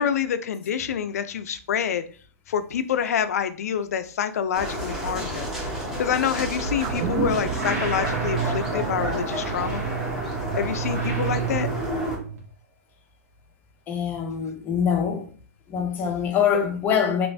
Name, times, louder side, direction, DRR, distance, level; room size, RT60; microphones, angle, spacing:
voice 1, 0.0-2.0 2.5-5.5 6.0-9.8 10.6-11.7, left 8 dB, 70° left, 0.4 m, -27 dB
sound 1, 4.5-12.2, equal, 5° right, 1.0 m, -31 dB
sound 2, 6.8-11.4 11.7-11.8, right 6 dB, 30° right, 0.4 m, -33 dB
sound 3, 6.9-12.4, right 6 dB, 75° right, 1.4 m, -30 dB
voice 2, 13.9-15.3 15.7-17.3, left 7 dB, 20° left, 0.6 m, -24 dB
3.1 x 3.0 x 2.6 m
hypercardioid pair, 140°, 8 cm